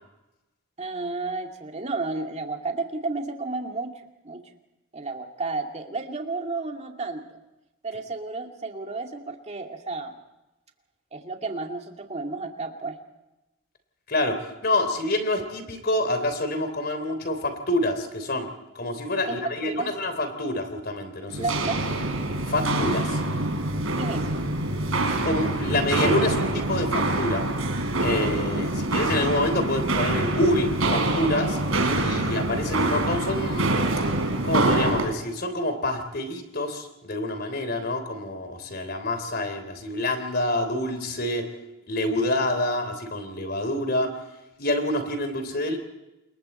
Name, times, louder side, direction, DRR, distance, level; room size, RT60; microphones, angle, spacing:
voice 1, 0.8-3.9 4.2-4.4 4.9-7.4 7.8-10.1 11.1-13.0 19.3-19.4 19.6-19.9 21.4-21.8 24.0-24.4, right 3 dB, 30° right, 3 dB, 2.3 m, -32 dB
voice 2, 14.6-18.5 18.8-21.4 22.5-23.2 25.2-27.4 28.0-31.6 32.0-33.8 34.4-41.4 41.9-44.1 44.6-45.8, left 1 dB, 45° left, 8 dB, 3.5 m, -27 dB
Walk footsteps, 21.3-35.1, right 2 dB, 80° right, 4.3 m, -25 dB
28.5 x 22.0 x 4.4 m, 0.97 s
head